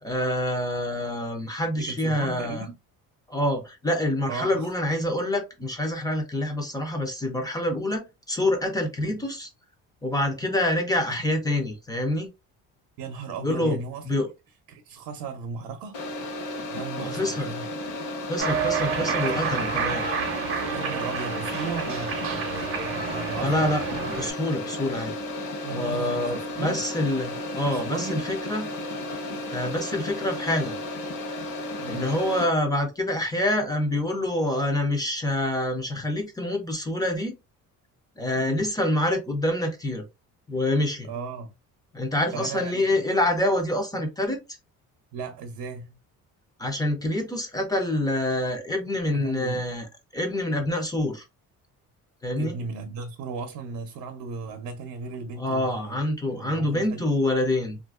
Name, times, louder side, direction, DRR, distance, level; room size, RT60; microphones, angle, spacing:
voice 1, 0.0-2.7 3.3-9.5 10.0-12.3 13.4-13.8 14.1-14.3 17.0-17.5 18.3-20.1 23.4-25.2 25.7-28.7 29.5-30.8 31.8-37.3 38.2-40.0 40.5-41.1 41.9-44.4 46.6-49.9 50.1-51.2 52.2-52.5 55.4-57.8, left 1 dB, 10° left, 0.4 m, -26 dB
voice 2, 1.7-2.8 4.3-4.7 11.1-11.4 13.0-14.1 14.7-16.0 16.7-17.7 18.8-19.7 20.7-23.7 25.6-26.8 27.7-28.2 31.8-32.1 38.4-38.7 41.0-41.5 42.3-43.0 45.1-46.0 49.1-49.6 52.4-56.0 56.3-57.1, right 5 dB, 80° right, 0.6 m, -36 dB
sound 1, 15.9-32.5, left 1 dB, 70° left, 1.0 m, -34 dB
Cheering, 18.4-24.3, right 6 dB, 40° right, 0.6 m, -29 dB
3.5 x 2.5 x 2.3 m
cardioid pair, 180°, 34 cm